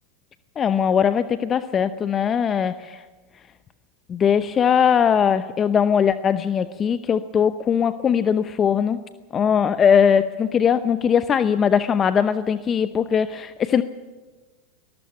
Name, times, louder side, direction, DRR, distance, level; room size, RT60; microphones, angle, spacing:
voice 1, 0.6-3.0 4.1-9.0 9.3-13.8, left 7 dB, 30° left, 12 dB, 0.8 m, -20 dB
21.5 x 14.0 x 9.1 m, 1.3 s
hypercardioid pair, 105°, 0 cm